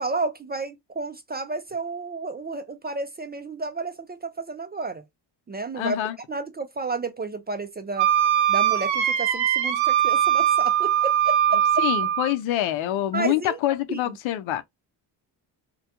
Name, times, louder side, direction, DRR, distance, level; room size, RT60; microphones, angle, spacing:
voice 1, 0.0-5.0 5.5-6.0 6.3-8.1 8.5-11.8 13.1-13.6 13.9-14.2, right 3 dB, 25° right, 0.3 m, -31 dB
voice 2, 5.7-6.2 11.8-14.6, left 13 dB, 75° left, 0.6 m, -26 dB
Wind instrument woodwind instrument, 8.0-12.3, right 10 dB, 85° right, 0.6 m, -21 dB
2.2 x 2.2 x 2.8 m
supercardioid pair, 60°, 47 cm